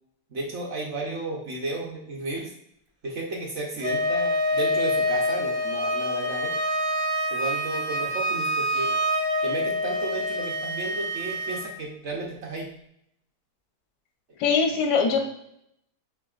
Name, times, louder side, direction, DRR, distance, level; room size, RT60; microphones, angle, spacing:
voice 1, 0.3-2.5 3.0-6.5 7.3-8.9 9.4-12.7 15.1-15.2, right 2 dB, 55° right, -1 dB, 0.9 m, -33 dB
Wind instrument woodwind instrument, 3.8-11.7, left 1 dB, 40° right, 0.4 m, -26 dB
voice 2, 14.4-15.2, left 5 dB, 85° left, 4 dB, 1.3 m, -22 dB
5.8 x 3.4 x 2.4 m, 0.76 s
omnidirectional pair, 1.7 m